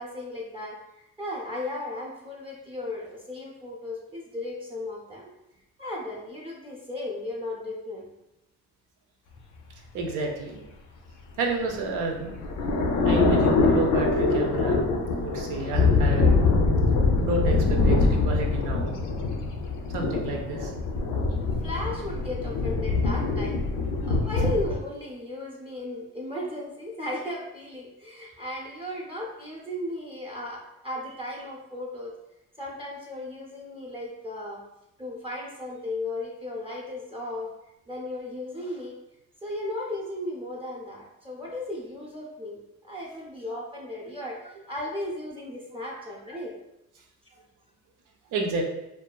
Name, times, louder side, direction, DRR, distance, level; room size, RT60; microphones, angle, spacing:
voice 1, 0.0-5.2 5.8-8.1 21.4-32.1 32.6-34.6 35.0-37.5 37.9-38.9 39.4-46.5, left 1 dB, 20° right, -3 dB, 0.5 m, -35 dB
voice 2, 9.9-10.6 11.4-12.3 13.0-14.8 15.2-16.4 17.2-18.9 19.9-20.7 44.1-44.2 48.3-48.6, right 3 dB, 85° right, 1 dB, 0.6 m, -30 dB
sound 1, 11.6-24.7, left 3 dB, 75° left, 0.5 m, -24 dB
2.6 x 2.3 x 2.2 m, 0.90 s
cardioid pair, 90°, 30 cm